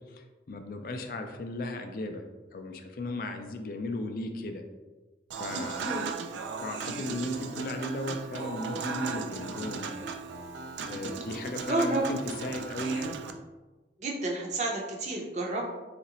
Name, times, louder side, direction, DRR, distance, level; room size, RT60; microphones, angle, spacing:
voice 1, 0.0-2.2 2.5-4.6 5.4-6.1 6.6-10.3 10.9-13.2, left 1 dB, 50° left, 5 dB, 0.4 m, -36 dB
Human voice / Acoustic guitar / Piano, 5.3-13.3, right 4 dB, 90° right, 0.3 m, -37 dB
voice 2, 11.7-12.0 14.0-15.7, right 2 dB, 40° right, -1 dB, 0.6 m, -30 dB
3.9 x 2.5 x 2.8 m, 1.2 s
head